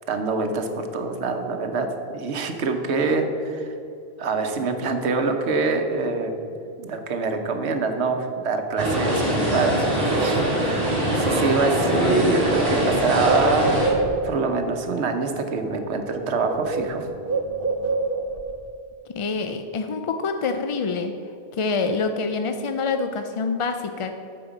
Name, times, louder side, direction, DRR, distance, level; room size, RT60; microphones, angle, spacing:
voice 1, 0.1-3.7 4.2-6.3 6.8-13.7 14.2-17.1, right 4 dB, 90° right, 6 dB, 1.2 m, -25 dB
sound 1, 8.8-13.9, equal, 35° right, 2.5 m, -22 dB
Bird, 12.0-14.5 15.6-15.8 16.1-18.5, right 3 dB, 60° right, 0.9 m, -27 dB
voice 2, 19.1-21.1 21.6-24.1, left 4 dB, 55° left, 7 dB, 0.3 m, -26 dB
8.7 x 4.9 x 7.2 m, 2.6 s
omnidirectional pair, 1.1 m